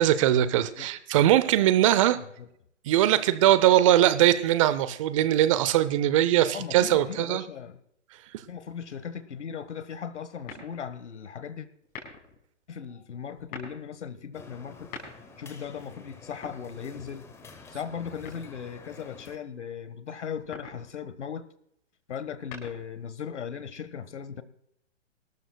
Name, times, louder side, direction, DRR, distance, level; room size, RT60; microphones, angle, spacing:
voice 1, 0.0-2.2 2.9-7.4, right 12 dB, 25° right, 14 dB, 0.7 m, -21 dB
voice 2, 2.1-2.5 6.5-7.8 8.5-11.7 12.7-14.9 15.4-17.3 17.7-21.5 22.1-24.4, left 7 dB, 65° left, 14 dB, 1.5 m, -38 dB
sound 1, 10.4-11.0 11.8-12.4 13.3-13.8 14.7-15.5 16.3-17.2 18.2-18.9 20.3-20.9 22.2-23.1, left 4 dB, 25° left, 5.3 m, -44 dB
sound 2, 14.3-19.4, left 4 dB, 5° left, 1.0 m, -49 dB
24.0 x 13.5 x 2.3 m, 0.74 s
hypercardioid pair, 140°, 37 cm